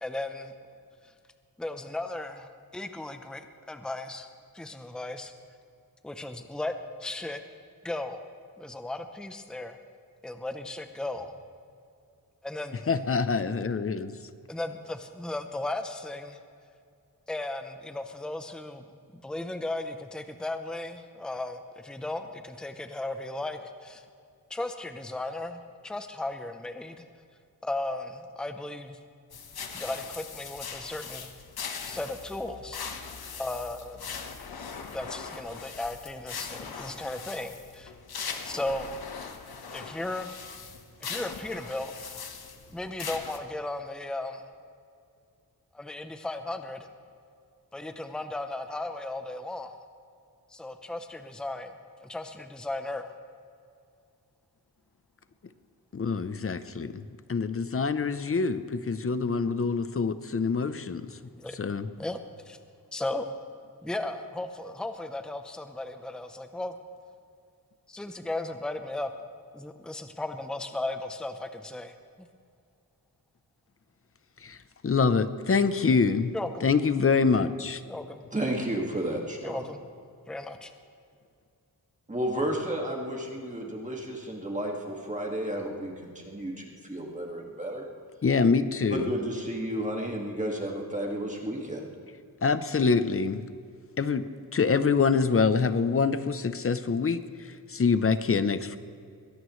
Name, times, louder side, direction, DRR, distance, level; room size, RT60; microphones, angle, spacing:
voice 1, 0.0-0.5 1.6-4.3 4.5-5.3 6.0-6.7 7.0-7.4 7.8-8.3 8.6-9.8 10.2-11.3 12.4-12.9 14.5-16.4 17.3-24.0 24.5-27.0 27.6-29.0 29.7-31.3 31.8-32.8 33.4-34.1 34.9-37.9 38.4-39.0 39.7-40.4 41.0-42.3 42.7-44.5 45.7-46.9 47.7-49.8 50.5-51.7 52.0-53.1 61.4-61.6 62.0-62.2 62.5-62.6 62.9-63.3 63.8-66.8 67.9-69.1 69.5-72.3 76.3-76.7 77.9-78.2 79.4-79.8 80.3-80.7, left 2 dB, ahead, 7 dB, 0.7 m, -36 dB
voice 2, 12.9-14.2 55.9-57.0 57.3-61.2 61.6-61.9 74.4-74.6 74.8-76.3 76.6-77.8 88.2-89.1 92.4-93.4 94.0-94.3 94.5-97.3 97.7-98.8, left 5 dB, 40° left, 12 dB, 0.7 m, -25 dB
sound 1, 29.3-43.4, left 6 dB, 85° left, 1.3 m, -40 dB
voice 3, 78.3-79.6 82.1-87.9 88.9-91.9, right 1 dB, 20° right, -1 dB, 2.0 m, -32 dB
22.5 x 17.5 x 3.2 m, 2.4 s
wide cardioid pair, 125°, 36 cm